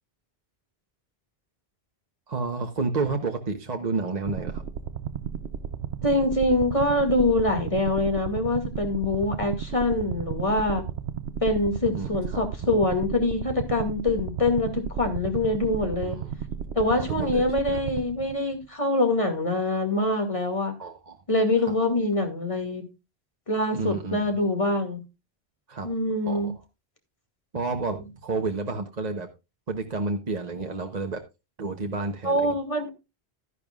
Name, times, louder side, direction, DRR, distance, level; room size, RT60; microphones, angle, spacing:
voice 1, 2.3-4.6 11.9-12.4 16.0-16.3 16.9-17.8 20.8-21.2 21.6-21.7 23.7-24.2 25.7-25.9 26.2-26.5 27.5-29.3 29.7-31.2 31.6-32.5, right 3 dB, 45° right, 1.1 m, -30 dB
sound 1, 4.2-18.6, right 8 dB, 90° right, 1.0 m, -34 dB
voice 2, 6.0-10.8 11.4-16.2 16.7-20.7 21.3-22.9 23.5-25.0 25.8-26.5 32.2-32.9, left 2 dB, 30° left, 2.3 m, -24 dB
12.5 x 10.5 x 2.4 m
omnidirectional pair, 1.1 m